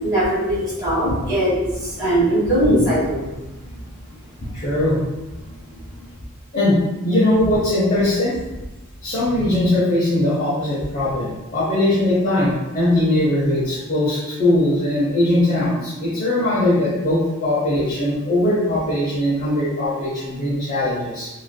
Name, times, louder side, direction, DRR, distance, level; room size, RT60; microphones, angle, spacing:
voice 1, 0.0-3.2, equal, 15° right, -10 dB, 1.3 m, -20 dB
voice 2, 4.5-5.0 6.5-8.4 9.0-21.3, left 1 dB, 40° left, -9 dB, 0.6 m, -20 dB
2.9 x 2.5 x 2.2 m, 1.0 s
head